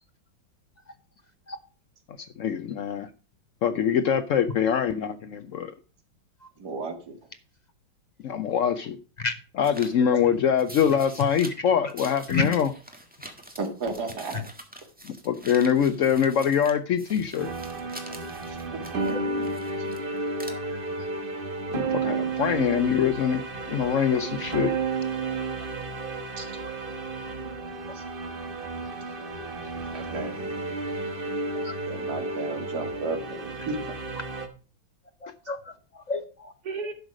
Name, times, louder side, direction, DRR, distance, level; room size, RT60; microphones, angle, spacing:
voice 1, 2.4-3.1 3.6-5.7 8.2-9.0 9.6-12.7 15.0-17.5 21.7-23.4 23.7-24.7, left 8 dB, 90° left, 11 dB, 0.6 m, -24 dB
voice 2, 6.6-7.2 13.6-14.4 18.5-19.5 26.4-26.5 27.9-28.0 29.2-29.3 29.9-30.4 31.9-33.8 36.7-36.9, right 3 dB, 55° right, 3 dB, 2.5 m, -34 dB
sound 1, 9.6-9.9 10.6-11.5 11.9-16.7 17.0-20.0 20.3-20.5, right 1 dB, 5° right, 1.3 m, -45 dB
sound 2, 17.4-34.5, right 3 dB, 35° right, 1.2 m, -32 dB
voice 3, 20.4-20.8 24.4-24.5 31.5-31.7 35.2-36.5, left 4 dB, 45° left, 8 dB, 0.5 m, -31 dB
11.5 x 6.4 x 4.9 m, 0.37 s
omnidirectional pair, 2.1 m